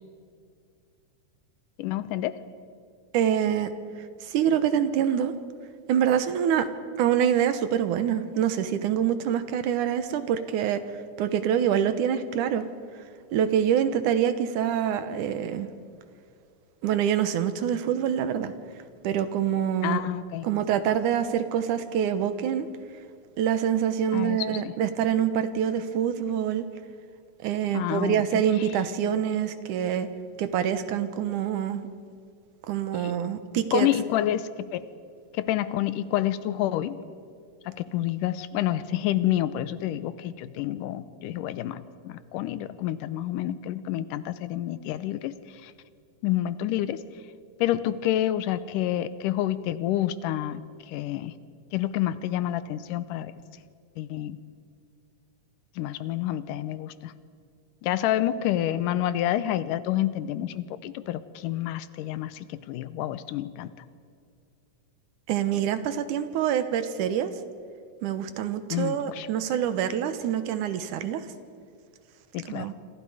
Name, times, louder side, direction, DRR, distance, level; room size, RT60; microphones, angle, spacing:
voice 1, 1.8-2.4 19.8-20.5 24.1-24.8 27.7-28.7 32.9-33.2 33.6-34.8 35.3-37.0 37.7-45.3 45.6-45.7 46.2-47.0 47.6-50.6 50.9-51.3 51.7-53.3 54.0-54.4 55.8-57.1 57.8-63.7 68.7-69.3 72.3-72.7, left 12 dB, 90° left, 14 dB, 2.4 m, -28 dB
voice 2, 3.1-3.7 4.2-5.3 5.9-6.7 7.0-10.8 11.2-12.6 13.3-15.7 16.8-18.5 19.0-20.0 20.4-22.7 23.4-26.6 27.4-30.1 30.4-31.9 32.7-33.9 65.3-67.3 68.0-71.2 72.5-72.7, right 9 dB, 75° right, 11 dB, 2.5 m, -25 dB
27.0 x 26.0 x 5.0 m, 2.3 s
omnidirectional pair, 3.7 m